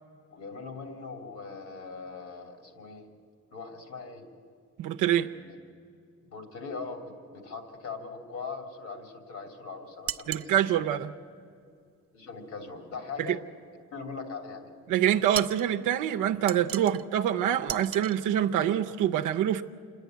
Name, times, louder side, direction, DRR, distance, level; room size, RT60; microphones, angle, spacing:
voice 1, 0.3-3.1 3.5-4.2 5.2-5.6 6.2-10.9 12.1-13.4 13.9-14.7, left 4 dB, 75° left, 5 dB, 3.1 m, -41 dB
voice 2, 4.8-5.3 10.3-11.1 14.9-19.6, right 10 dB, 85° right, 5 dB, 0.7 m, -25 dB
sound 1, 10.1-10.5 15.3-15.7 16.5-17.0 17.7-18.2, right 10 dB, 50° right, 0.5 m, -35 dB
27.0 x 10.5 x 9.3 m, 2.3 s
cardioid pair, 90°, 30 cm